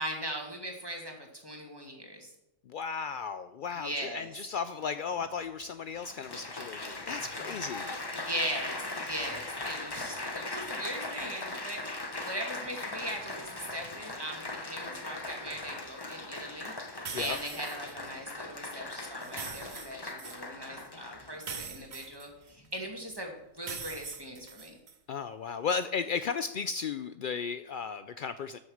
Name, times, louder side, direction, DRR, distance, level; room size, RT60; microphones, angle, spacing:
voice 1, 0.0-2.3 3.8-4.3 7.4-7.6 8.1-11.8 12.2-24.8, right 1 dB, 15° right, 1 dB, 2.2 m, -39 dB
voice 2, 2.7-7.9 17.1-17.4 25.1-28.6, left 6 dB, 80° left, 11 dB, 0.4 m, -35 dB
Applause, 5.2-5.3 5.9-21.9 22.6-22.9, left 2 dB, 20° left, 0.9 m, -39 dB
sound 1, 17.1-17.9 19.2-20.4 21.4-22.8 23.6-25.0, right 6 dB, 40° right, 0.8 m, -42 dB
12.5 x 6.4 x 6.4 m, 0.86 s
omnidirectional pair, 1.4 m